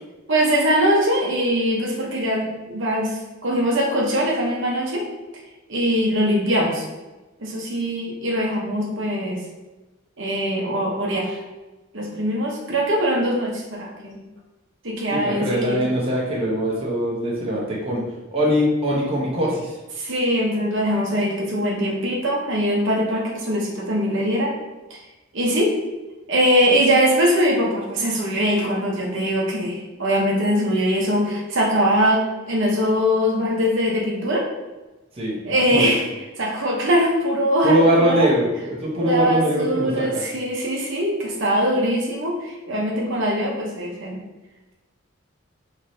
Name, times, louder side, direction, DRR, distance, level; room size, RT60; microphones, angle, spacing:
voice 1, 0.3-5.0 5.7-6.8 7.4-9.4 10.2-11.4 11.9-14.2 14.8-15.8 20.0-24.5 24.9-25.0 25.3-25.7 26.3-34.4 35.4-36.0 36.4-38.3 39.0-44.2, equal, 60° right, -2 dB, 0.9 m, -22 dB
voice 2, 15.1-18.0 18.3-19.7 35.2-35.9 37.6-40.2, equal, 30° right, -5 dB, 1.0 m, -22 dB
5.8 x 3.2 x 2.8 m, 1.1 s
head